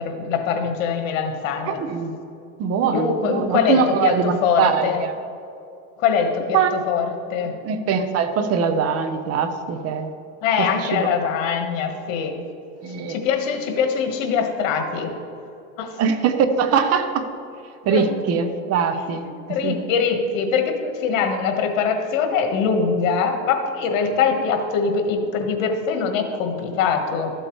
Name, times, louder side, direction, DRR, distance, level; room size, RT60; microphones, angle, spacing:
voice 1, 0.0-1.8 2.9-5.0 6.0-6.6 6.8-7.5 10.4-12.4 13.1-15.1 15.8-15.9 17.9-18.0 19.5-27.3, left 6 dB, 80° left, 5 dB, 1.4 m, -22 dB
voice 2, 1.6-2.1 2.6-5.1 6.5-6.7 7.6-10.1 10.6-11.1 12.8-13.2 16.0-17.3 17.8-19.3 19.6-19.8, right 6 dB, 40° right, 8 dB, 0.8 m, -22 dB
13.0 x 7.9 x 3.1 m, 2.6 s
supercardioid pair, 135°, 38 cm